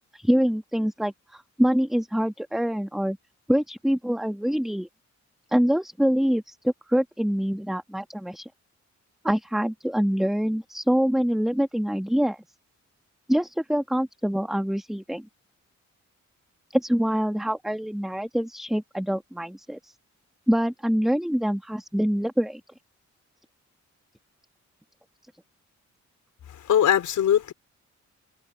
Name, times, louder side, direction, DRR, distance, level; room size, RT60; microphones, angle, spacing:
voice 1, 0.1-3.2 3.5-4.9 5.5-8.5 9.2-12.4 13.3-15.3 16.7-19.9 20.5-22.6, equal, ahead, 1.6 m, -25 dB
voice 2, 26.5-27.5, left 10 dB, 90° left, 4.7 m, -21 dB
wide cardioid pair, 135°, 29 cm